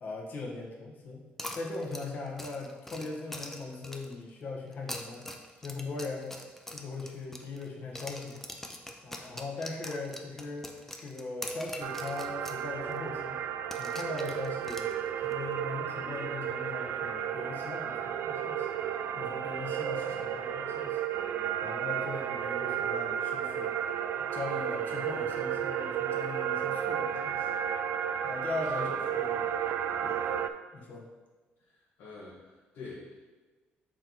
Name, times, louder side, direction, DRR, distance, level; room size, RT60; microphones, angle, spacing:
voice 1, 0.0-1.2 1.5-5.3 5.6-6.4 6.7-8.5 9.0-13.4 13.8-14.9 15.2-18.7 19.2-21.0 21.6-23.9 24.2-27.5 28.2-29.5 30.0-30.2 30.7-31.1, left 3 dB, 45° left, -1 dB, 1.2 m, -40 dB
sound 1, 1.4-4.2 4.7-7.7 8.0-12.6 12.9-13.0 13.7-15.3, left 1 dB, 5° left, 0.5 m, -43 dB
sound 2, 11.8-30.5, right 9 dB, 65° right, 0.3 m, -33 dB
voice 2, 28.6-28.9 31.6-33.2, left 3 dB, 80° left, -7 dB, 1.5 m, -46 dB
6.4 x 4.6 x 4.0 m, 1.3 s
cardioid pair, 165°, 4 cm